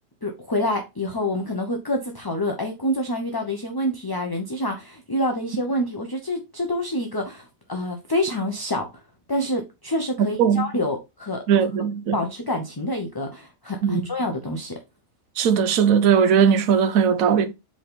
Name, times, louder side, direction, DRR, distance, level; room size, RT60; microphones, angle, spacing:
voice 1, 0.2-8.9 9.3-11.4 12.1-14.8, left 1 dB, 20° left, 0.8 m, -27 dB
voice 2, 11.5-12.2 13.8-14.0 15.4-17.5, right 7 dB, 80° right, 1.2 m, -19 dB
5.3 x 3.9 x 5.1 m
omnidirectional pair, 1.4 m